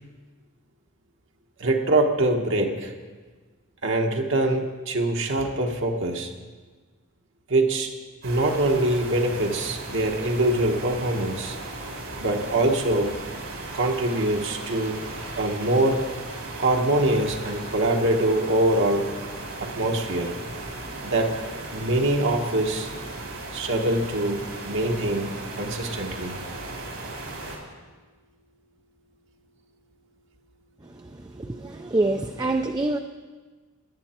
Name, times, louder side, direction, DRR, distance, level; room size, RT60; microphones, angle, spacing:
voice 1, 1.6-2.9 3.8-6.3 7.5-7.9 8.2-11.6 12.2-13.2 13.7-15.0 15.4-16.1 16.6-19.1 19.6-20.3 21.0-21.4 21.7-22.9 23.5-26.4, right 1 dB, 60° right, 2 dB, 1.3 m, -24 dB
sound 1, 8.2-27.6, right 2 dB, 80° right, 3.5 m, -36 dB
voice 2, 31.4-33.0, right 2 dB, 20° right, 4 dB, 0.5 m, -25 dB
18.0 x 10.0 x 4.4 m, 1.4 s
head